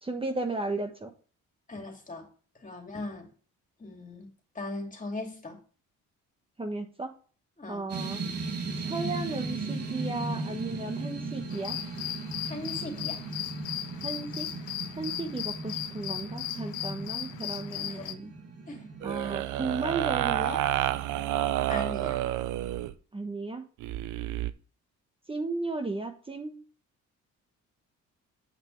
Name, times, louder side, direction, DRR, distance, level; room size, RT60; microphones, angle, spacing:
voice 1, 0.0-1.1 6.6-7.1 7.7-8.2 8.8-11.8 14.0-14.5 15.0-18.3 19.0-20.6 23.1-23.6 25.3-26.6, right 3 dB, 20° right, 1.1 m, -34 dB
voice 2, 1.7-2.3 2.6-3.3 3.8-4.3 4.5-5.6 7.6-7.9 12.4-13.2 17.9-18.1 18.7-18.9 21.7-22.2, left 2 dB, 25° left, 2.6 m, -39 dB
sound 1, 7.9-21.3, right 3 dB, 55° right, 2.5 m, -38 dB
sound 2, 11.5-18.1, left 12 dB, 80° left, 0.9 m, -37 dB
sound 3, 19.0-22.9 23.8-24.5, right 13 dB, 85° right, 0.6 m, -29 dB
7.9 x 6.1 x 3.2 m
cardioid pair, 90°, 30 cm